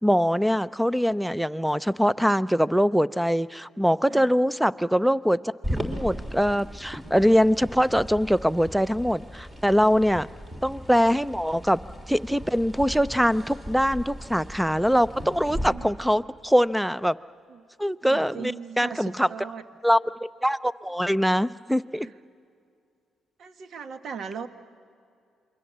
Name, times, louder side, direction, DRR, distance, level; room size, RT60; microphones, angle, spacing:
voice 1, 0.0-10.3 10.6-11.8 12.1-17.2 17.8-19.3 19.8-22.1, equal, 5° right, 16 dB, 0.5 m, -23 dB
sound 1, 5.6-15.7, equal, 25° right, 3.4 m, -37 dB
voice 2, 15.5-15.9 17.5-17.6 18.0-19.6 22.0-22.1 23.4-24.5, right 6 dB, 60° right, 9 dB, 1.2 m, -38 dB
28.0 x 23.0 x 7.4 m, 2.3 s
cardioid pair, 90°, 0 cm